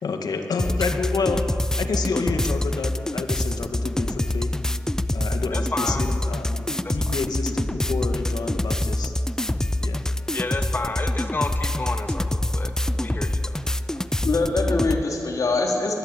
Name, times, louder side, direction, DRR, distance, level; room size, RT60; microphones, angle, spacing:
voice 1, 0.0-1.4 1.8-4.5 5.1-9.1 9.8-10.0, left 4 dB, 85° left, 5 dB, 2.2 m, -29 dB
sound 1, 0.6-15.0, left 1 dB, 10° left, 0.6 m, -25 dB
voice 2, 5.5-6.0 6.8-7.2 10.3-13.6, left 3 dB, 30° left, 5 dB, 2.1 m, -31 dB
voice 3, 13.9-16.0, left 3 dB, 60° left, 1 dB, 3.9 m, -24 dB
24.0 x 20.0 x 9.1 m, 2.9 s
wide cardioid pair, 145°, 7 cm